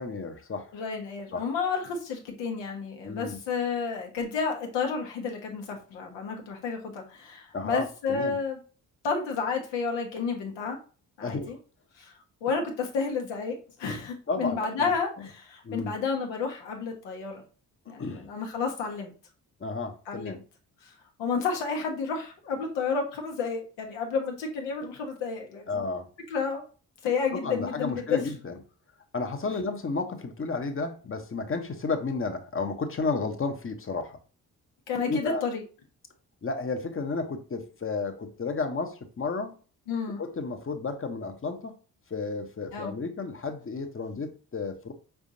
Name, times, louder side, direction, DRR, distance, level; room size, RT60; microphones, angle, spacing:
voice 1, 0.0-0.7 1.3-1.5 3.0-3.4 7.5-8.4 11.2-11.5 14.3-14.9 15.2-15.3 15.6-16.0 18.0-18.3 19.6-20.4 25.7-26.1 27.3-28.6 29.1-34.2 35.1-35.4 36.4-39.5 40.2-41.7 42.1-44.9, left 3 dB, 30° left, 0.9 m, -32 dB
voice 2, 0.7-8.6 9.0-10.8 11.2-11.6 12.0-12.1 12.4-17.4 17.9-19.1 20.1-20.4 20.8-20.9 21.2-25.9 26.3-26.6 27.0-28.3 34.9-35.6 39.9-40.2 42.7-42.9, left 5 dB, 75° left, 1.2 m, -31 dB
4.9 x 3.5 x 2.7 m
hypercardioid pair, 45°, 44 cm